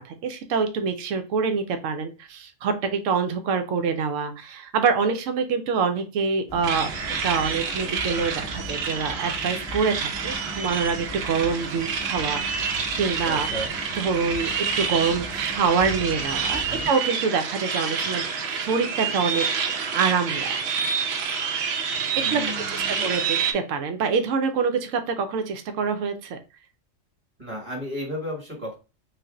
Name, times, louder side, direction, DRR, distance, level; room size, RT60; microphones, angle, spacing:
voice 1, 0.0-6.9 7.2-13.5 14.0-19.5 19.7-20.6 22.2-26.4, right 5 dB, 90° right, 8 dB, 1.0 m, -26 dB
sound 1, 6.5-16.9, equal, 25° left, 0.7 m, -39 dB
sound 2, 6.6-23.5, right 6 dB, 65° right, 0.8 m, -28 dB
voice 2, 13.2-13.7 16.6-16.9 22.1-23.1 27.4-28.8, equal, 30° right, -2 dB, 1.2 m, -34 dB
3.3 x 2.5 x 3.6 m, 0.30 s
omnidirectional pair, 1.3 m